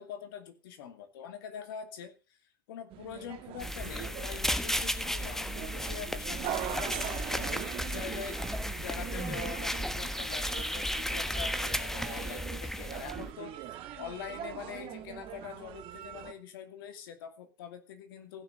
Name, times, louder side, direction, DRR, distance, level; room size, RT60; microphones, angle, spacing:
voice 1, 0.0-2.4 2.7-8.4 8.8-13.6 14.0-18.4, left 8 dB, 75° left, 8 dB, 2.5 m, -44 dB
sound 1, 2.9-16.3, right 11 dB, 50° right, 1.8 m, -42 dB
sound 2, 3.6-13.3, equal, 5° left, 1.3 m, -34 dB
sound 3, 6.9-11.6 12.1-12.2 13.0-13.1 14.0-14.1, right 11 dB, 75° right, 2.5 m, -51 dB
15.5 x 6.5 x 6.5 m, 0.32 s
hypercardioid pair, 85°, 12 cm